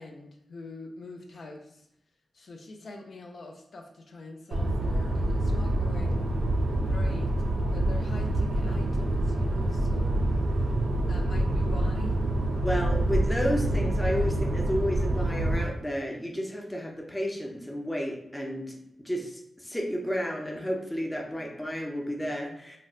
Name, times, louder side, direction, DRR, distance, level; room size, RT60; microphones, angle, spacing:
voice 1, 0.0-1.8 2.3-6.3 6.9-7.3 7.6-10.2 11.1-12.2, left 2 dB, 60° left, 2 dB, 0.4 m, -44 dB
sound 1, 4.5-15.6, right 1 dB, 85° right, 0.4 m, -26 dB
voice 2, 12.6-18.8 19.0-22.8, equal, 10° left, 1 dB, 0.5 m, -31 dB
3.8 x 2.2 x 2.3 m, 0.77 s
wide cardioid pair, 105°, 0 cm